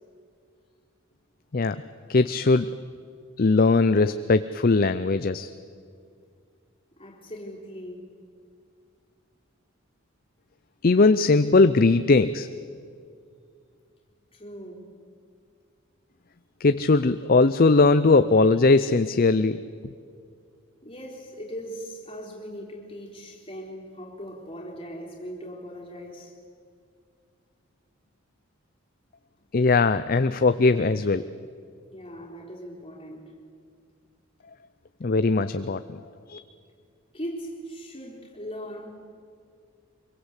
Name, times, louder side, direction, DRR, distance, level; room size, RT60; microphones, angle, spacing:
voice 1, 2.1-2.7 3.4-5.5 10.8-12.5 16.6-19.6 29.5-31.3 35.0-36.0 36.3-36.4, left 3 dB, 45° left, 0.5 m, -20 dB
voice 2, 7.0-8.1 14.3-14.9 20.8-26.4 31.9-33.3 37.1-38.9, equal, 25° left, 3.9 m, -39 dB
25.0 x 22.5 x 8.2 m
head